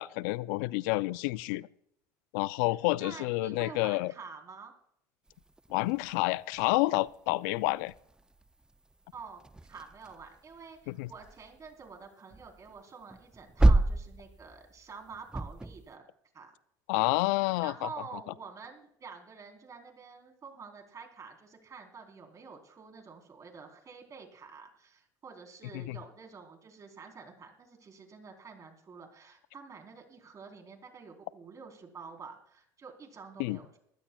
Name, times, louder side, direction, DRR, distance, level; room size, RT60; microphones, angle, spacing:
voice 1, 0.0-1.7 2.3-4.1 5.7-7.9 10.9-11.1 16.9-17.9 25.7-26.0 33.4-33.6, left 20 dB, 75° left, 18 dB, 0.4 m, -29 dB
voice 2, 3.0-4.7 9.1-9.4 9.7-16.1 16.3-16.5 17.6-33.8, right 5 dB, 35° right, 3 dB, 3.9 m, -48 dB
sound 1, 5.3-15.9, right 2 dB, 10° right, 0.5 m, -32 dB
22.5 x 15.5 x 2.3 m, 0.71 s
supercardioid pair, 90°, 10 cm